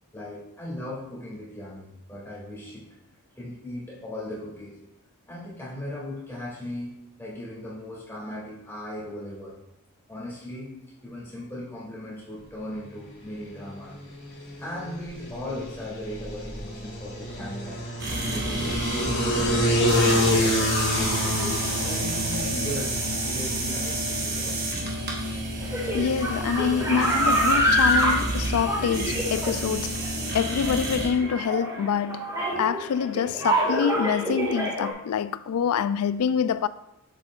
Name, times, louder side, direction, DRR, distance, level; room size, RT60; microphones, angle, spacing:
voice 1, 0.1-2.9 3.4-4.8 5.3-9.6 10.1-10.7 11.0-14.0 14.6-17.8 18.3-20.7 21.2-24.6, left 1 dB, 10° left, 2.4 m, -37 dB
sound 1, 13.0-31.0, left 1 dB, 65° left, 2.5 m, -30 dB
sound 2, 18.0-31.1, right 1 dB, 45° right, 1.2 m, -30 dB
voice 2, 22.3-22.7 25.9-30.1 30.3-36.7, left 7 dB, 90° left, 0.3 m, -26 dB
sound 3, 25.6-34.9, equal, 15° right, 1.5 m, -26 dB
7.5 x 7.2 x 2.4 m
head